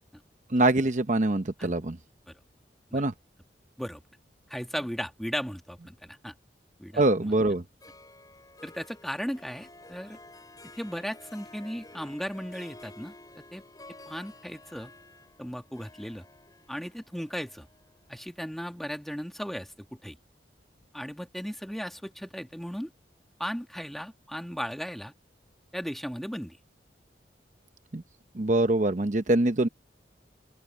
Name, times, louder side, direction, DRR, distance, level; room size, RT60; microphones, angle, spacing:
voice 1, 0.5-2.0 2.9-3.1 6.9-7.6 27.9-28.0 28.3-29.7, right 2 dB, 45° right, 0.9 m, -24 dB
voice 2, 4.5-6.3 6.8-7.0 8.6-10.2 10.7-13.1 13.5-13.6 14.1-14.9 15.4-16.2 16.7-17.7 18.1-19.7 20.0-20.2 20.9-22.9 23.4-25.1 25.7-26.6, equal, ahead, 1.6 m, -36 dB
Harp, 7.8-19.2, left 2 dB, 20° left, 6.2 m, -52 dB
open air
head